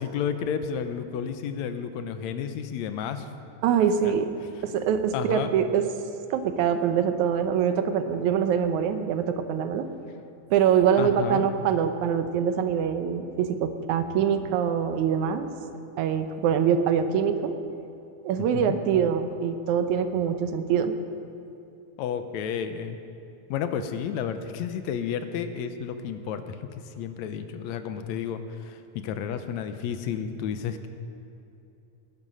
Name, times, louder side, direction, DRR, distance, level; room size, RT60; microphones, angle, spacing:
voice 1, 0.0-3.3 4.0-4.1 5.1-5.5 11.0-11.5 18.5-18.8 22.0-23.0 23.5-30.9, left 8 dB, 75° left, 9 dB, 2.0 m, -31 dB
voice 2, 3.6-4.3 4.6-5.9 6.3-9.9 10.5-15.5 16.0-17.6 18.2-20.9, right 8 dB, 80° right, 9 dB, 2.2 m, -24 dB
19.5 x 11.0 x 5.5 m, 2.8 s
omnidirectional pair, 3.4 m